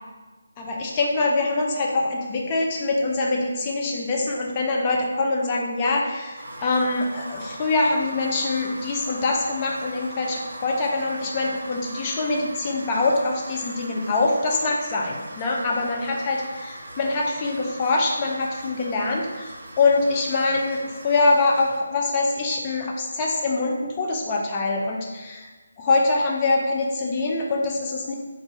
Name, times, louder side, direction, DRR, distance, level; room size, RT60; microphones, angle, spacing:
voice 1, 0.6-25.5 25.8-28.1, left 3 dB, 25° left, -1 dB, 0.4 m, -24 dB
sound 1, 6.4-21.8, right 1 dB, 60° right, 0.7 m, -40 dB
2.4 x 2.3 x 4.0 m, 1.2 s
figure-of-eight pair, 150°, 0 cm